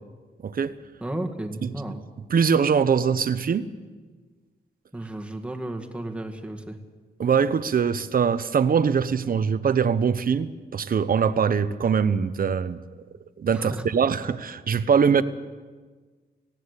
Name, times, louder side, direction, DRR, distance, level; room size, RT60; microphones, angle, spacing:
voice 1, 0.4-0.7 1.6-1.7 2.2-3.7 7.2-12.8 13.4-15.2, right 6 dB, 55° right, 13 dB, 0.9 m, -22 dB
voice 2, 1.0-2.0 4.9-6.8 13.5-13.8, right 1 dB, 5° right, 3 dB, 2.0 m, -33 dB
19.0 x 16.5 x 8.3 m, 1.4 s
wide cardioid pair, 135°, 18 cm